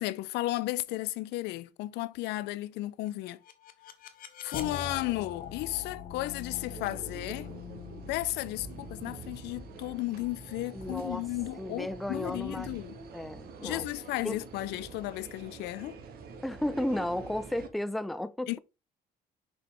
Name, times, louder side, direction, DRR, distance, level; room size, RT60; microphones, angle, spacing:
voice 1, 0.0-3.4 4.4-7.5 8.1-13.0 13.6-16.0 18.5-18.6, left 18 dB, 85° left, 0.5 m, -34 dB
sound 1, 3.1-12.0, left 7 dB, 55° left, 1.0 m, -44 dB
sound 2, 6.4-17.7, right 4 dB, 65° right, 1.3 m, -46 dB
voice 2, 10.7-11.2 11.6-12.8 13.1-13.9 14.2-14.4 16.4-18.5, left 1 dB, ahead, 0.4 m, -33 dB
6.2 x 3.3 x 4.7 m
cardioid pair, 110°, 17 cm